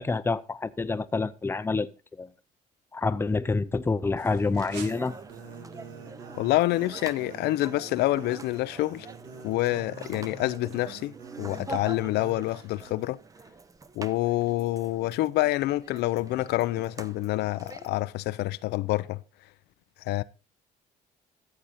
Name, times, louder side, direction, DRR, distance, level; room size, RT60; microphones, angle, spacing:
voice 1, 0.0-1.9 2.2-2.3 2.9-5.1, left 3 dB, 15° left, 0.6 m, -27 dB
sound 1, 4.2-12.9, right 6 dB, 90° right, 2.5 m, -46 dB
sound 2, 4.6-17.9, right 3 dB, 20° right, 0.8 m, -45 dB
voice 2, 6.3-9.1 9.4-13.2 14.0-19.2 20.1-20.2, left 17 dB, 80° left, 0.5 m, -27 dB
13.5 x 7.7 x 4.1 m
cardioid pair, 110°, 17 cm